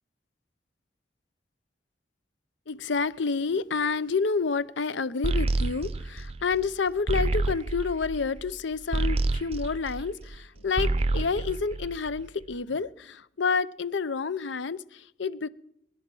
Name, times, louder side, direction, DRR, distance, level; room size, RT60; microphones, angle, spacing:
voice 1, 2.7-15.5, left 5 dB, 75° left, 0.6 m, -29 dB
sound 1, 5.2-10.4 10.7-12.4, right 2 dB, 30° right, 0.6 m, -29 dB
20.5 x 11.5 x 6.1 m
head